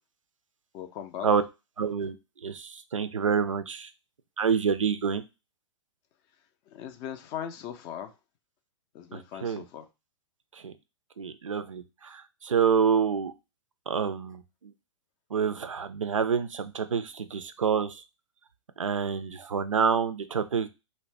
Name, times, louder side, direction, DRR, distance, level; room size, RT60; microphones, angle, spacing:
voice 1, 0.7-1.3 6.7-8.1 8.9-9.8, left 9 dB, 30° left, 7 dB, 0.4 m, -39 dB
voice 2, 1.8-2.2 2.4-3.9 4.4-5.2 9.1-9.6 10.6-10.7 11.2-13.3 13.9-14.4 15.3-17.9 18.8-20.7, right 6 dB, 85° right, 10 dB, 0.4 m, -27 dB
2.6 x 2.0 x 3.2 m, 0.26 s
figure-of-eight pair, 115°, 16 cm